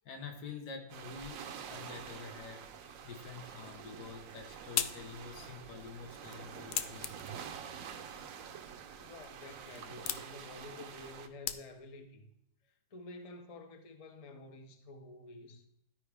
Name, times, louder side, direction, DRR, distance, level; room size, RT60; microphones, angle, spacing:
voice 1, 0.1-2.6 3.0-7.1, left 5 dB, 85° left, 1.8 m, -47 dB
sound 1, 0.9-11.3, right 7 dB, 65° right, 1.0 m, -47 dB
sound 2, 4.1-12.1, left 10 dB, 70° left, 0.8 m, -42 dB
voice 2, 9.0-12.3 12.9-15.7, left 2 dB, 40° left, 0.5 m, -50 dB
12.5 x 4.8 x 3.4 m
omnidirectional pair, 1.7 m